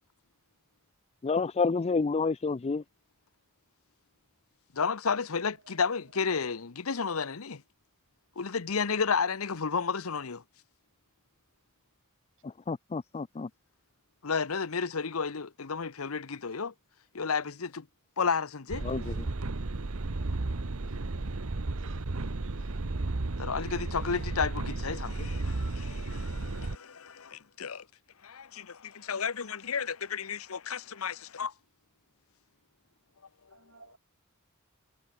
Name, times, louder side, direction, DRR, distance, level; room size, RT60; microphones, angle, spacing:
voice 1, 1.2-2.8 12.7-13.5 18.8-19.1, left 4 dB, 30° left, 0.4 m, -29 dB
voice 2, 4.7-7.6 8.4-10.4 14.2-16.7 17.1-17.9 18.2-18.8 23.4-27.9 28.2-31.5 33.5-33.6, left 5 dB, 85° left, 1.0 m, -32 dB
sound 1, 18.7-26.8, right 2 dB, 85° right, 1.1 m, -33 dB
voice 3, 21.8-22.5 24.1-24.3 33.5-34.0, right 4 dB, 65° right, 3.5 m, -56 dB
head